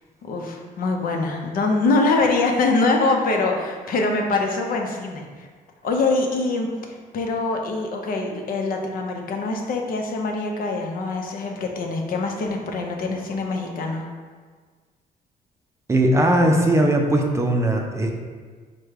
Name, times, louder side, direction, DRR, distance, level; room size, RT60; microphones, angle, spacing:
voice 1, 0.2-5.2 5.8-6.7 7.1-14.1, left 3 dB, 70° left, 2 dB, 0.7 m, -23 dB
voice 2, 15.9-18.1, right 1 dB, 20° right, 2 dB, 0.5 m, -19 dB
4.9 x 2.2 x 4.6 m, 1.5 s
cardioid pair, 110°, 15 cm